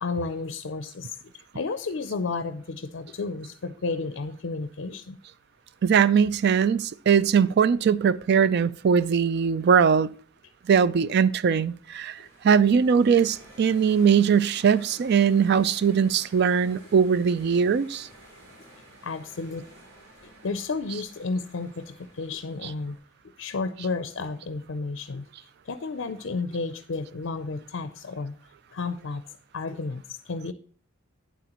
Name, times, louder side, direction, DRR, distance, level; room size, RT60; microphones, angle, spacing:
voice 1, 0.0-1.1 1.5-5.2 19.0-19.6 20.4-23.0 23.4-25.2 25.7-28.3 28.7-29.2 29.5-30.5, left 4 dB, 60° left, 0.5 m, -32 dB
voice 2, 5.8-10.1 10.7-12.2 12.4-18.1, right 7 dB, 50° right, 0.3 m, -21 dB
sound 1, 11.7-23.0, right 1 dB, 80° right, 4.0 m, -52 dB
9.3 x 7.7 x 3.0 m
head